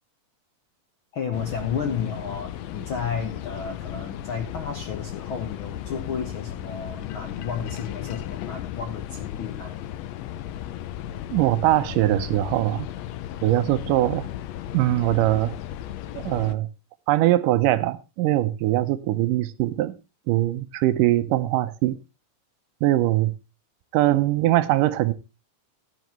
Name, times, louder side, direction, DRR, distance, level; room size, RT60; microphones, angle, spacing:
voice 1, 1.1-9.8, left 6 dB, 60° left, 1.3 m, -32 dB
sound 1, 1.3-16.6, left 12 dB, 85° left, 1.5 m, -35 dB
voice 2, 11.3-12.9 13.4-14.3 14.7-15.6 16.2-16.7 17.1-20.0 20.3-22.0 22.8-23.4 23.9-25.1, right 15 dB, 80° right, 2.2 m, -22 dB
15.5 x 10.0 x 3.0 m
omnidirectional pair, 3.9 m